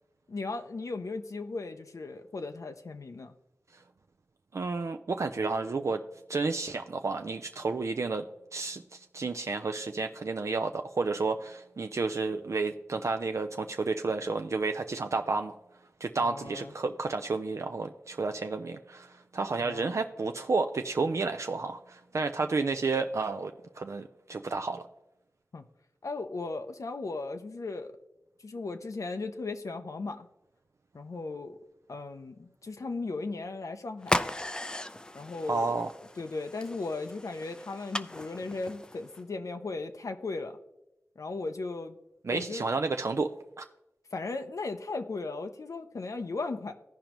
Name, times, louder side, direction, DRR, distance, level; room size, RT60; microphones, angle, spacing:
voice 1, 0.3-3.3 16.2-16.7 19.6-20.0 25.5-25.6 26.0-27.9 28.4-30.3 30.9-31.6 31.9-34.2 35.1-35.8 36.2-40.6 41.2-42.0 42.3-42.6 44.1-46.7, left 3 dB, 75° left, 7 dB, 0.5 m, -36 dB
voice 2, 4.5-6.0 6.3-8.2 8.5-8.8 9.1-15.5 16.0-23.5 23.8-24.8 35.5-35.9 42.2-43.6, right 3 dB, 60° right, 6 dB, 0.4 m, -31 dB
sound 1, 34.0-39.2, left 1 dB, 15° left, 0.4 m, -36 dB
15.5 x 5.1 x 3.0 m, 0.89 s
wide cardioid pair, 75°, 6 cm